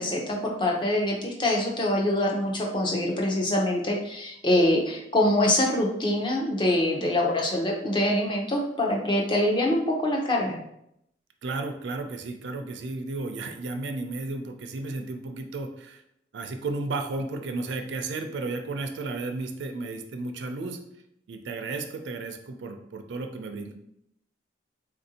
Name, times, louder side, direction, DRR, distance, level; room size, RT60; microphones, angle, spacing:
voice 1, 0.0-10.6, left 1 dB, 25° left, -1 dB, 0.6 m, -24 dB
voice 2, 11.4-16.0 16.3-20.8 21.3-23.7, right 3 dB, 70° right, 6 dB, 0.4 m, -33 dB
3.6 x 2.5 x 2.7 m, 0.77 s
head